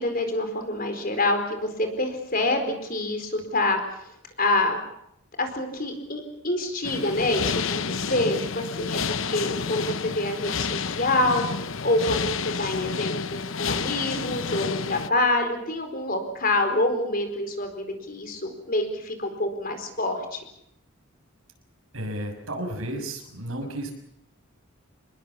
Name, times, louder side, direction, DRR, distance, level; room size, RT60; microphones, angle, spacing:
voice 1, 0.0-3.8 4.4-4.8 5.4-20.4, left 2 dB, 40° left, 6 dB, 4.5 m, -26 dB
sound 1, 6.8-15.1, left 5 dB, 65° left, 0.9 m, -30 dB
voice 2, 21.9-23.9, right 1 dB, 75° right, 4 dB, 6.5 m, -32 dB
27.5 x 21.0 x 7.2 m, 0.77 s
head